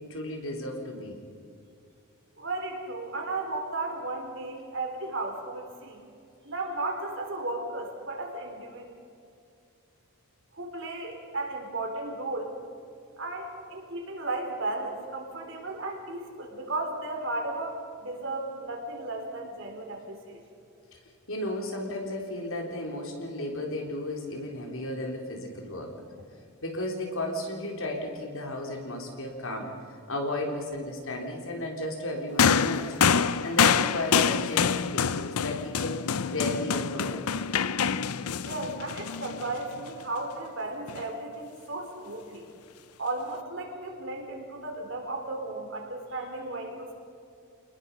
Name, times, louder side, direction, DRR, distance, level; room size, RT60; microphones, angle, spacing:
voice 1, 0.1-1.2 21.3-25.9 26.6-29.8 30.1-33.0 33.4-37.4, left 1 dB, 65° left, 2 dB, 3.9 m, -34 dB
voice 2, 2.4-6.0 6.4-8.8 10.5-12.5 13.2-20.4 38.4-42.4 43.0-46.9, right 2 dB, 55° right, 1 dB, 4.4 m, -35 dB
sound 1, 32.4-39.9 40.9-41.0, left 6 dB, 85° left, 0.7 m, -26 dB
28.5 x 20.5 x 5.5 m, 2.5 s
head